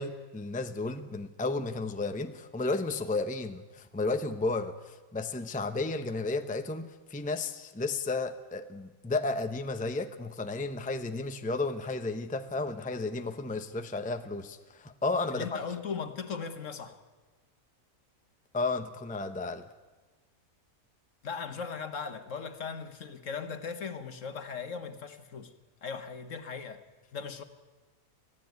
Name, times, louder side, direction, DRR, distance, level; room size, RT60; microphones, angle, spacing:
voice 1, 0.0-15.6 18.5-19.7, left 3 dB, 5° left, 8 dB, 0.7 m, -33 dB
voice 2, 15.3-17.0 21.2-25.5 25.8-26.8 27.1-27.4, left 6 dB, 60° left, 8 dB, 1.7 m, -38 dB
25.0 x 16.0 x 9.5 m, 1.3 s
omnidirectional pair, 1.5 m